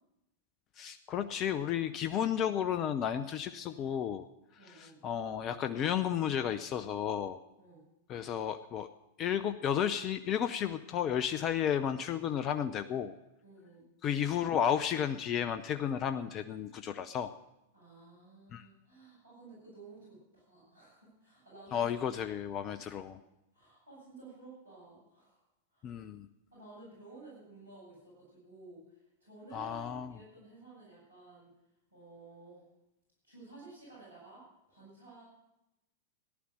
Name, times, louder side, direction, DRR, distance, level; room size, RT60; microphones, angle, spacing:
voice 1, 0.8-4.2 4.6-7.4 8.1-8.9 9.2-13.1 14.0-17.3 18.5-18.7 21.7-23.2 25.8-26.3 29.5-30.2, left 9 dB, 35° left, 11 dB, 0.6 m, -33 dB
voice 2, 4.6-5.0 7.6-7.9 13.4-13.9 17.7-22.2 23.5-25.4 25.7-26.0 26.5-31.5 31.9-32.7 33.2-34.4 34.7-35.2, right 3 dB, 80° right, -6 dB, 7.8 m, -54 dB
14.5 x 11.0 x 6.6 m, 0.89 s
figure-of-eight pair, 95°, 0 cm